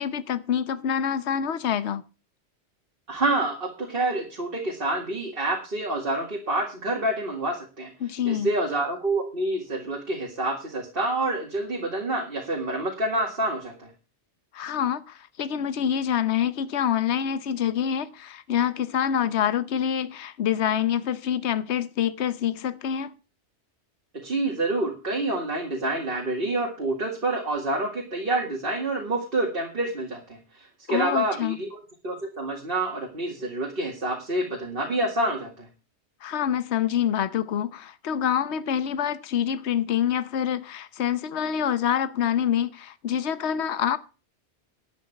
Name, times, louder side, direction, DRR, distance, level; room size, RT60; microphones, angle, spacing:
voice 1, 0.0-2.0 8.0-8.5 14.5-23.1 30.9-31.6 36.2-44.0, left 9 dB, 75° left, 1.1 m, -26 dB
voice 2, 3.1-7.9 8.3-13.9 24.1-31.7 32.0-35.7, right 2 dB, 50° right, 2.4 m, -27 dB
12.0 x 9.7 x 5.2 m
omnidirectional pair, 1.2 m